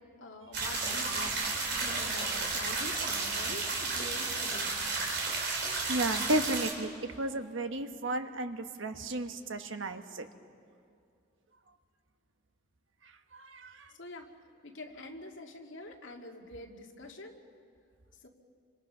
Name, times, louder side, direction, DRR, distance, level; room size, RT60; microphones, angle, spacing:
voice 1, 0.2-4.9 14.0-14.3 14.6-17.4 18.2-18.3, left 2 dB, 75° left, 1 dB, 2.4 m, -45 dB
sound 1, 0.5-6.7, right 3 dB, 60° right, 4.1 m, -32 dB
voice 2, 5.9-6.9 7.2-10.3 13.3-13.9, right 1 dB, 80° right, 7 dB, 1.3 m, -33 dB
29.5 x 26.0 x 5.7 m, 2.4 s
head